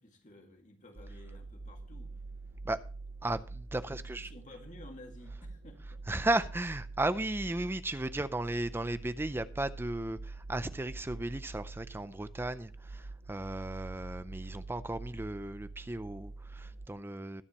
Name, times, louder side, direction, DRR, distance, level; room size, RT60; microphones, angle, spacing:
voice 1, 0.0-2.1 3.9-6.0, left 1 dB, 40° left, 2.1 m, -53 dB
sound 1, 1.0-16.9, right 3 dB, 50° right, 0.7 m, -46 dB
voice 2, 3.2-4.3 6.1-17.4, right 2 dB, 10° right, 0.4 m, -35 dB
21.0 x 7.1 x 3.0 m
head